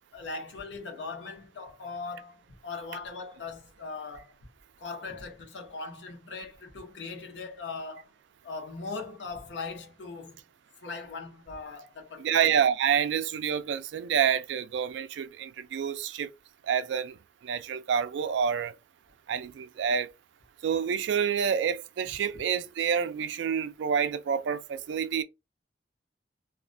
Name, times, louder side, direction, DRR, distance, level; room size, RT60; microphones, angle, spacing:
voice 1, 0.1-4.3 4.8-8.1 8.4-10.4 10.8-12.5, left 4 dB, 75° left, 0.7 m, -39 dB
voice 2, 12.2-16.3 16.6-17.2 17.4-18.7 19.3-20.1 20.6-25.2, right 7 dB, 70° right, 0.3 m, -28 dB
2.3 x 2.1 x 2.5 m
head